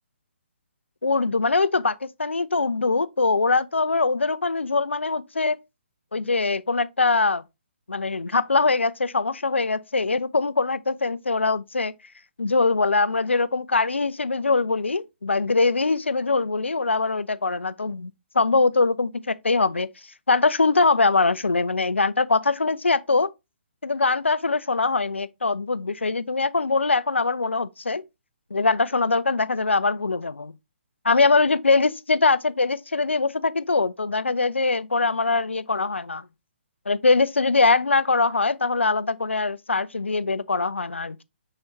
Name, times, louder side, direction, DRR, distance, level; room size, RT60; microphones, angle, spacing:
voice 1, 1.0-5.6 6.1-7.4 7.9-11.9 12.4-19.9 20.3-23.3 23.8-28.0 28.5-30.5 31.0-36.2 36.9-41.2, left 3 dB, 85° left, 0.3 m, -22 dB
5.6 x 3.1 x 2.7 m
figure-of-eight pair, 135°, 6 cm